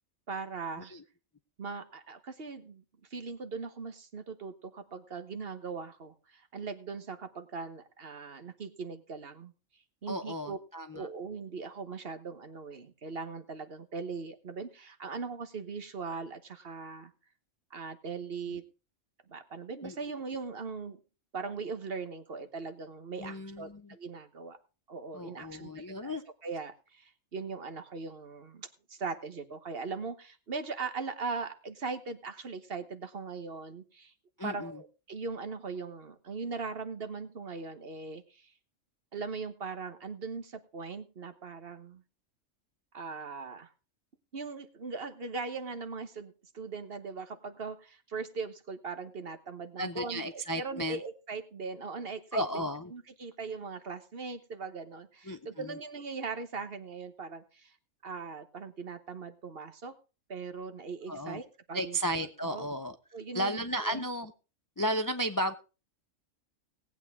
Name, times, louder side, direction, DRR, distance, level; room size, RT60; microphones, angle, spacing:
voice 1, 0.3-0.9 1.6-2.8 3.1-9.5 10.0-10.6 10.9-17.1 17.7-18.6 19.3-21.0 21.3-24.6 24.9-26.1 26.4-34.1 34.4-38.5 39.1-42.0 42.9-43.7 44.3-57.8 58.0-59.9 60.3-62.7 63.1-64.0, right 4 dB, 50° right, 10 dB, 1.3 m, -40 dB
voice 2, 10.1-11.1 18.5-18.6 19.8-20.0 23.2-23.9 25.1-26.2 34.4-34.7 49.8-51.0 52.3-52.9 55.3-55.8 61.1-61.4 61.7-63.0 63.3-64.3 64.8-65.5, equal, 25° left, 9 dB, 0.4 m, -34 dB
18.5 x 8.6 x 3.6 m, 0.32 s
omnidirectional pair, 1.3 m